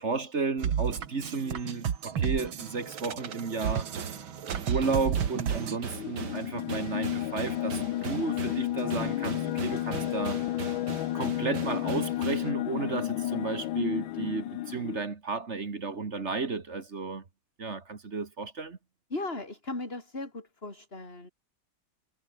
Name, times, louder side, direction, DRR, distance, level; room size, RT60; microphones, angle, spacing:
voice 1, 0.0-3.9 4.7-10.4 11.1-17.2 17.6-18.8, right 4 dB, 35° right, 1.8 m, -33 dB
sound 1, 0.6-5.8, right 8 dB, 75° right, 2.5 m, -32 dB
sound 2, 3.6-12.5, right 6 dB, 55° right, 2.6 m, -40 dB
sound 3, 5.8-15.0, left 14 dB, 75° left, 1.5 m, -32 dB
voice 2, 19.1-21.3, left 2 dB, 25° left, 4.8 m, -37 dB
omnidirectional pair, 2.2 m